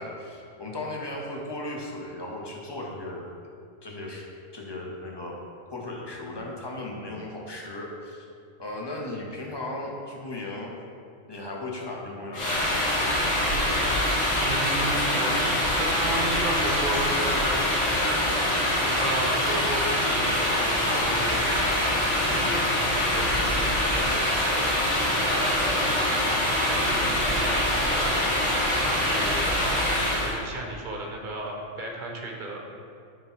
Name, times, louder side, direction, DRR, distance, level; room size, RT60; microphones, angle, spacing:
voice 1, 0.0-3.3 3.8-4.2 4.5-5.4 5.7-8.2 8.6-10.7 11.3-12.6, left 2 dB, 25° left, -2 dB, 0.8 m, -36 dB
sound 1, 12.3-30.4, left 1 dB, 75° left, 2.1 m, -24 dB
voice 2, 14.3-17.8 18.9-21.8 22.2-24.4 24.6-26.4 26.7-28.3 28.9-29.8 30.2-32.6, right 2 dB, 45° right, 0 dB, 1.0 m, -34 dB
8.9 x 3.7 x 4.6 m, 2.4 s
omnidirectional pair, 1.3 m